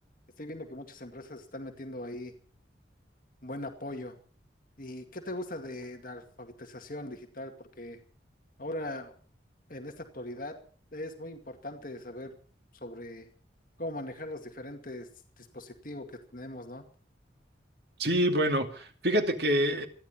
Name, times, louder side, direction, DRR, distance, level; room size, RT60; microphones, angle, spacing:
voice 1, 0.4-2.3 3.4-4.2 4.8-8.0 8.6-9.2 9.7-10.6 10.9-12.3 12.7-13.3 13.8-15.1 15.4-16.8, left 1 dB, 45° left, 2.1 m, -40 dB
voice 2, 18.0-19.9, equal, 60° right, 2.5 m, -26 dB
27.5 x 11.0 x 4.4 m
head